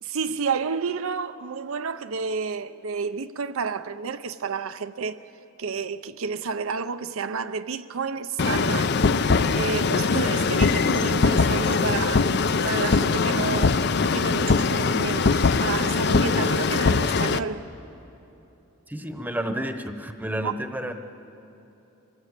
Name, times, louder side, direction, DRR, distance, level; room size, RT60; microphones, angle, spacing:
voice 1, 0.0-5.2 5.6-9.0 9.6-12.4 12.6-13.7 14.0-17.6 20.4-20.5, right 5 dB, 75° right, 0.6 m, -30 dB
sound 1, 8.4-17.4, left 4 dB, 50° left, 0.5 m, -22 dB
voice 2, 18.9-20.9, right 1 dB, 10° right, 0.9 m, -30 dB
26.5 x 19.0 x 8.2 m
head